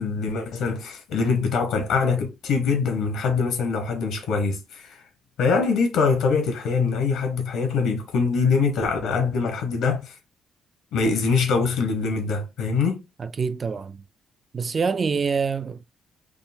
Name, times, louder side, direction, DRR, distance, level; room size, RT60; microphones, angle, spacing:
voice 1, 0.0-5.0 5.4-10.1 10.9-13.0, left 5 dB, 80° left, 1.0 m, -23 dB
voice 2, 13.2-14.0 14.5-15.8, right 5 dB, 40° right, 0.3 m, -26 dB
3.5 x 2.1 x 2.6 m
cardioid pair, 90°, 0 cm